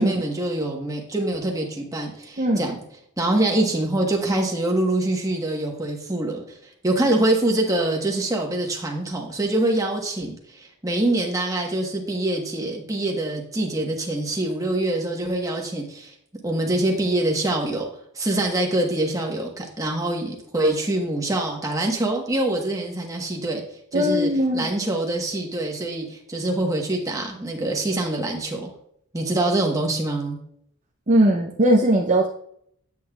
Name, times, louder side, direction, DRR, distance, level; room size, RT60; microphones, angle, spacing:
voice 1, 0.0-2.8 3.2-6.6 6.8-16.1 16.4-17.9 18.1-23.6 23.9-28.7 29.1-30.4, right 1 dB, 15° right, 1 dB, 1.2 m, -24 dB
voice 2, 23.9-24.7 31.1-32.3, right 1 dB, 35° right, -1 dB, 0.6 m, -19 dB
8.2 x 7.9 x 2.4 m, 0.70 s
head